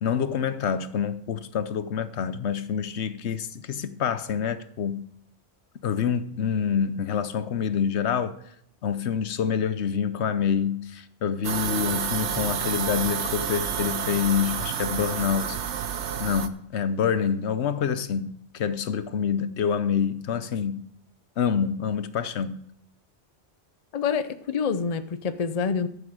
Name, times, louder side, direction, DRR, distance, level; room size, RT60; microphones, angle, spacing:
voice 1, 0.0-5.1 5.8-8.4 8.8-15.6 16.2-20.8 21.4-22.6, left 7 dB, 75° left, 1.0 m, -27 dB
sound 1, 11.4-16.5, right 8 dB, 85° right, 1.0 m, -29 dB
voice 2, 23.9-25.9, left 6 dB, 40° left, 0.6 m, -27 dB
12.5 x 7.0 x 4.8 m
omnidirectional pair, 1.1 m